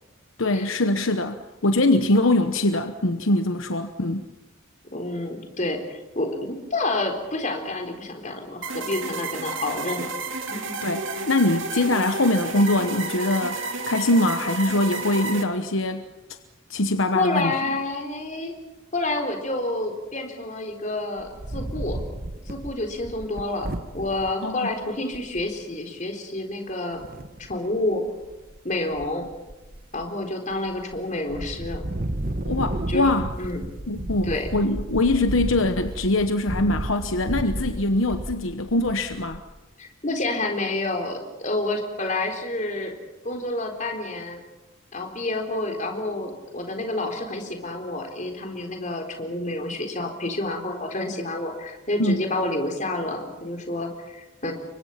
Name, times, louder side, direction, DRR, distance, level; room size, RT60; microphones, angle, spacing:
voice 1, 0.4-4.3 10.8-16.1 16.7-17.5 24.4-24.7 32.4-33.3 33.9-39.4 52.0-52.2, left 2 dB, 65° left, 8 dB, 1.1 m, -23 dB
voice 2, 4.9-10.1 10.5-10.7 17.1-18.5 18.9-22.0 22.5-23.7 23.9-27.0 27.4-28.0 28.6-29.3 29.9-31.8 32.9-33.1 33.4-33.6 34.2-34.5 39.8-42.9 43.2-44.4 44.9-54.5, left 2 dB, 35° left, 3 dB, 3.9 m, -29 dB
sound 1, 8.6-15.4, right 3 dB, 65° right, 2.7 m, -31 dB
Wind, 21.2-24.3 24.8-24.9 25.1-25.5 27.0-27.6 28.1-28.6 28.9-30.1 30.5-31.0 31.3-39.5, right 1 dB, 45° right, 1.2 m, -33 dB
29.5 x 24.0 x 5.8 m, 1.1 s
head